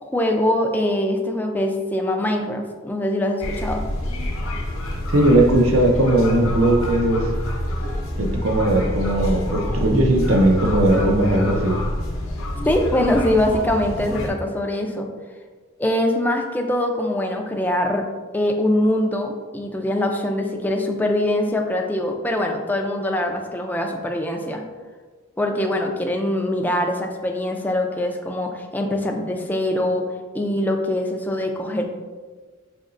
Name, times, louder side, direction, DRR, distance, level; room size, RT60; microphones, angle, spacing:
voice 1, 0.0-3.9 12.6-15.1 15.8-18.0 18.3-24.6 25.4-30.1 30.3-31.8, left 1 dB, 10° left, 2 dB, 0.3 m, -23 dB
sound 1, 3.4-14.3, left 1 dB, 80° left, 0.7 m, -27 dB
voice 2, 5.1-7.3 8.2-11.8, right 1 dB, 85° right, 1 dB, 0.6 m, -18 dB
5.2 x 2.8 x 2.5 m, 1.4 s
head